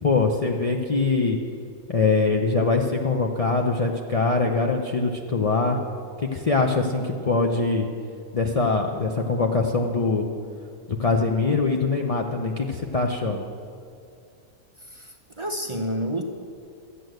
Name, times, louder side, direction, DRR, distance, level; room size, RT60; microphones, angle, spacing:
voice 1, 0.0-1.4 1.9-5.8 6.3-7.9 8.3-10.3 11.0-13.4, left 3 dB, 50° left, 1 dB, 0.4 m, -23 dB
voice 2, 14.8-16.2, equal, 35° right, 3 dB, 0.5 m, -30 dB
12.5 x 8.5 x 7.8 m, 2.3 s
omnidirectional pair, 1.7 m